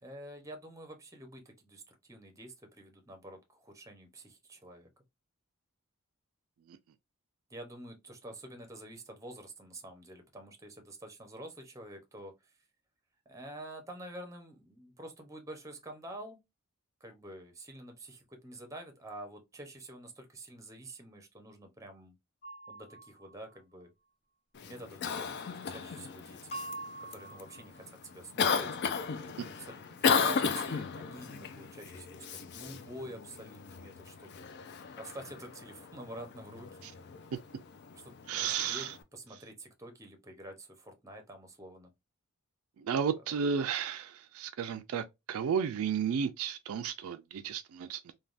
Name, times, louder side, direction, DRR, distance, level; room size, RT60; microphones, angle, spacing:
voice 1, 0.0-4.9 7.5-12.5 13.3-16.4 17.0-22.1 22.7-23.9 24.6-26.5 27.0-28.8 29.4-34.4 35.0-36.7 38.4-41.9, right 1 dB, 15° right, 0.7 m, -48 dB
sound 1, 22.4-23.6 26.5-27.9, right 2 dB, 30° left, 1.5 m, -44 dB
Cough, 24.5-39.0, left 6 dB, 50° left, 0.4 m, -36 dB
voice 2, 38.3-38.9 42.8-48.1, right 7 dB, 65° right, 0.3 m, -33 dB
3.3 x 2.2 x 2.4 m
head